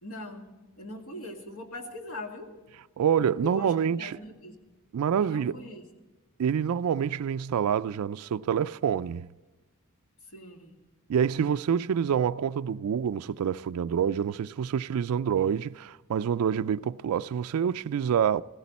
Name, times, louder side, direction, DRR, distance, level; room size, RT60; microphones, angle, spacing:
voice 1, 0.0-2.5 3.4-4.5 5.2-5.9 10.2-10.7, left 2 dB, 80° left, 2.3 m, -41 dB
voice 2, 3.0-4.2 4.9-5.6 6.4-9.3 11.1-18.4, right 8 dB, 90° right, 0.3 m, -27 dB
16.5 x 16.0 x 4.1 m
head